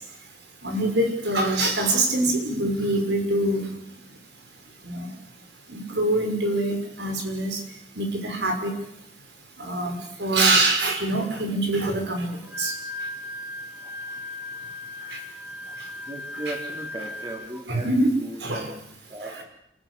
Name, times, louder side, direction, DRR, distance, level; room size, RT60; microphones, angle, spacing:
voice 1, 0.6-3.6 4.8-5.1 5.7-7.6 8.0-8.8 9.6-12.7 15.1-15.2 17.7-18.7, right 2 dB, 75° right, 4 dB, 6.0 m, -24 dB
Wind instrument woodwind instrument, 12.3-17.6, left 2 dB, 10° right, 2.6 m, -37 dB
voice 2, 16.1-18.8 19.1-19.3, right 1 dB, 25° right, 1 dB, 4.0 m, -37 dB
28.5 x 14.5 x 8.5 m, 0.77 s
head